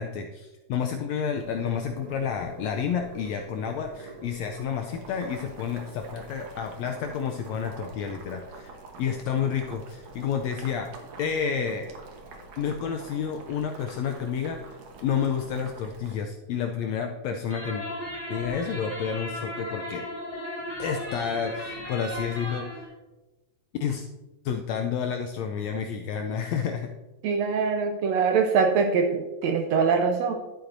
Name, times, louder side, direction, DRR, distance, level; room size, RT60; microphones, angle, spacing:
voice 1, 0.0-10.9 11.2-11.9 12.6-14.6 15.0-17.8 18.3-20.0 20.8-22.7 23.8-24.1 24.4-26.9, left 7 dB, 80° left, 5 dB, 1.5 m, -30 dB
Boiling, 1.3-16.1, right 3 dB, 65° right, 2.3 m, -45 dB
sound 1, 17.5-22.9, left 1 dB, 15° left, 1.5 m, -36 dB
voice 2, 27.2-30.4, right 5 dB, 80° right, 5 dB, 1.5 m, -23 dB
11.5 x 8.5 x 2.6 m, 1.1 s
omnidirectional pair, 3.6 m